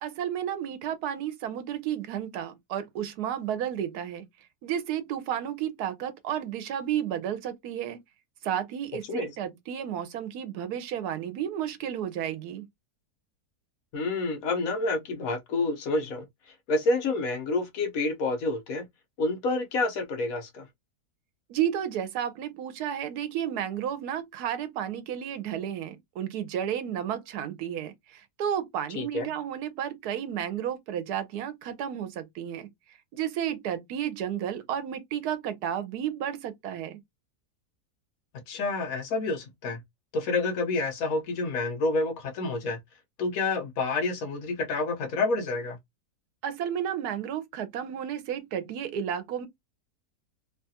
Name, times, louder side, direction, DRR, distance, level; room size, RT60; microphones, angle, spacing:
voice 1, 0.0-4.2 4.6-8.0 8.4-12.6 21.5-32.7 33.1-37.0 46.4-49.5, right 9 dB, 80° right, 1.2 m, -32 dB
voice 2, 13.9-16.3 16.7-18.9 19.2-20.7 28.9-29.3 38.5-39.8 40.1-42.8 43.2-45.8, left 3 dB, 65° left, 1.2 m, -28 dB
3.1 x 2.3 x 2.7 m
omnidirectional pair, 1.7 m